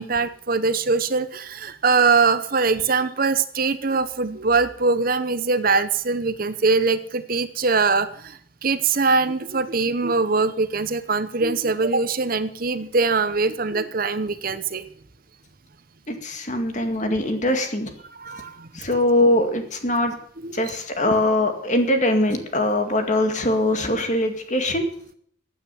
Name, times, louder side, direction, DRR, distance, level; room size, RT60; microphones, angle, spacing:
voice 1, 0.0-14.9 18.1-18.7 20.4-20.8, right 4 dB, 45° right, 12 dB, 0.8 m, -22 dB
voice 2, 16.1-17.9 18.7-20.2 20.5-24.8, left 1 dB, 35° left, 6 dB, 2.1 m, -22 dB
15.5 x 9.4 x 7.0 m, 0.63 s
head